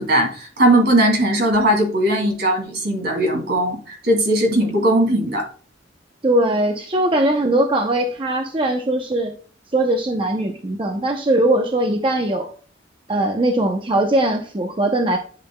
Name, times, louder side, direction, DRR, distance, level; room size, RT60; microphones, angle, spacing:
voice 1, 0.0-5.5, right 1 dB, 60° right, 2 dB, 2.6 m, -18 dB
voice 2, 6.2-9.3 9.7-12.5 13.1-15.2, right 1 dB, 30° right, 4 dB, 0.7 m, -20 dB
11.0 x 6.1 x 2.2 m, 0.41 s
head